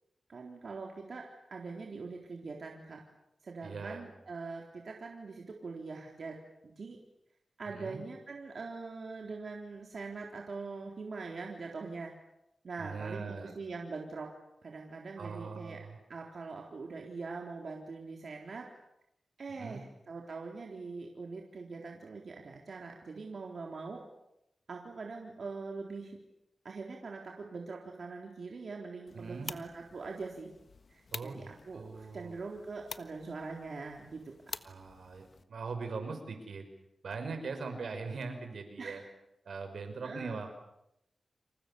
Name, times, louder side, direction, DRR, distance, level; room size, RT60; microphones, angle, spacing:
voice 1, 0.3-3.0 3.4-6.4 6.6-7.0 7.6-12.1 12.6-14.3 14.6-15.8 16.1-18.7 19.4-24.0 24.7-26.2 26.6-30.5 30.9-34.2 38.8-39.0 40.0-40.4, right 4 dB, 65° right, 0 dB, 3.9 m, -43 dB
voice 2, 3.6-4.0 7.7-8.0 12.8-13.5 15.2-16.0 19.5-19.8 29.1-29.5 31.1-32.4 34.6-36.7 37.0-39.0 39.5-40.6, right 4 dB, 85° right, 7 dB, 5.6 m, -41 dB
sound 1, 29.1-35.4, left 4 dB, 60° left, 1.4 m, -48 dB
30.0 x 27.5 x 7.1 m, 0.83 s
wide cardioid pair, 90°, 0 cm